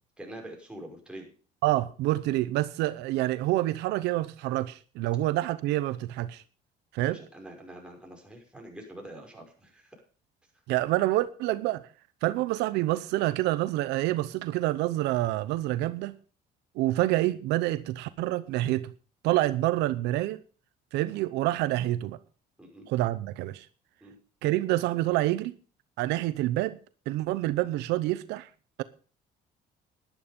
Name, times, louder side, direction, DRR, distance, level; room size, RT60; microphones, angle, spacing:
voice 1, 0.2-1.3 7.1-10.0 22.6-22.9 24.0-24.2, right 1 dB, 5° right, 5.6 m, -45 dB
voice 2, 1.6-6.4 6.9-7.2 10.7-11.8 12.2-16.1 16.8-18.9 19.2-20.4 20.9-22.2 22.9-23.7 24.4-25.5 26.0-26.8 27.1-28.5, right 16 dB, 90° right, 0.7 m, -27 dB
11.5 x 11.0 x 5.2 m
cardioid pair, 110°, 17 cm